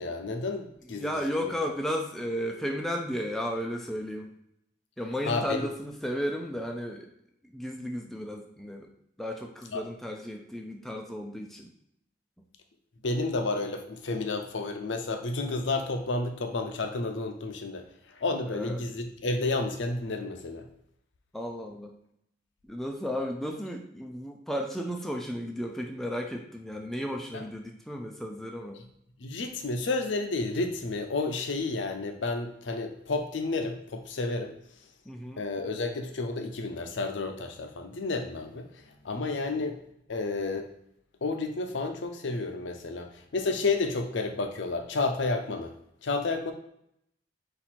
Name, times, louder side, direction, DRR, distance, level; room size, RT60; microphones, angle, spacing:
voice 1, 0.0-1.1 1.4-1.5 5.3-5.7 9.7-9.9 13.0-20.7 27.3-27.4 29.2-34.5 35.4-39.8 40.1-40.7 41.2-45.7 46.0-46.5, left 3 dB, 75° left, 6 dB, 0.6 m, -31 dB
voice 2, 0.9-4.3 5.0-7.1 7.4-8.9 9.2-11.7 18.5-18.9 21.3-21.9 22.6-28.8 35.1-35.4 39.5-39.6, equal, ahead, 1 dB, 0.4 m, -34 dB
4.3 x 2.6 x 4.2 m, 0.77 s
head